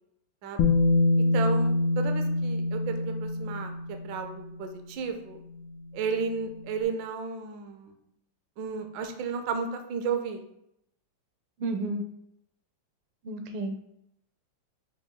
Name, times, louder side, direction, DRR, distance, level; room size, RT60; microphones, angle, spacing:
Bass guitar, 0.6-4.5 5.7-5.8, left 2 dB, 85° left, 1.5 m, -25 dB
voice 1, 1.3-3.7 4.0-5.4 5.9-8.0 8.6-10.4, right 5 dB, 70° right, 5 dB, 1.1 m, -33 dB
voice 2, 11.6-12.0 13.2-13.9, right 2 dB, 85° right, 6 dB, 1.6 m, -32 dB
5.9 x 3.6 x 2.2 m, 0.78 s
omnidirectional pair, 2.4 m